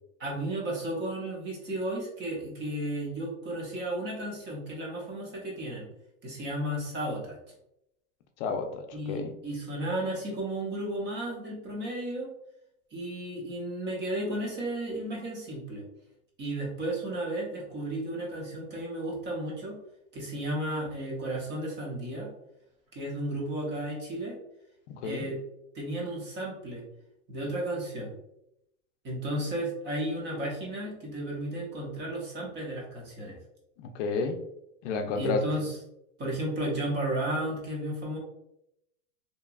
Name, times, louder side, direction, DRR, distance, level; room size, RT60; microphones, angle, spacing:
voice 1, 0.2-5.9 6.2-7.4 8.9-12.3 12.9-15.8 16.4-19.8 20.1-22.3 22.9-24.4 25.0-25.4 25.7-26.8 27.3-28.1 29.0-33.4 35.2-35.8 36.2-38.2, right 1 dB, 25° right, -2 dB, 0.7 m, -33 dB
voice 2, 8.4-9.3 24.9-25.3 33.9-34.4 34.8-35.4, left 4 dB, 55° left, 5 dB, 0.5 m, -31 dB
2.9 x 2.3 x 2.3 m, 0.82 s
supercardioid pair, 135°, 44 cm